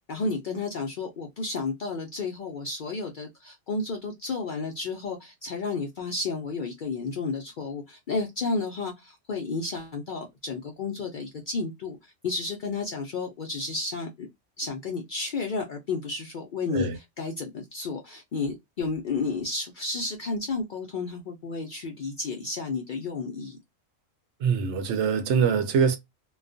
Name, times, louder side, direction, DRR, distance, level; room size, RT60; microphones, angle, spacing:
voice 1, 0.1-12.0 12.2-14.3 14.6-23.6, left 3 dB, 60° left, 0.5 m, -32 dB
voice 2, 24.4-26.0, right 6 dB, 70° right, 0.8 m, -24 dB
2.3 x 2.2 x 2.5 m
omnidirectional pair, 1.3 m